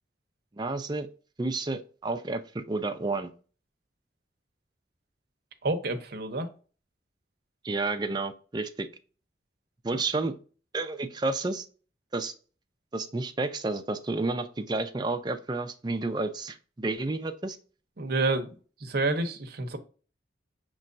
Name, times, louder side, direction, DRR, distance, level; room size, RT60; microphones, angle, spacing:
voice 1, 0.6-1.1 1.4-3.3 7.6-8.9 9.8-10.3 10.7-11.7 12.1-12.3 12.9-17.6, right 3 dB, 25° right, 0.4 m, -31 dB
voice 2, 5.6-6.5 9.9-10.0 18.0-18.6 18.8-19.8, right 2 dB, 55° right, 0.7 m, -29 dB
5.5 x 3.1 x 2.5 m
head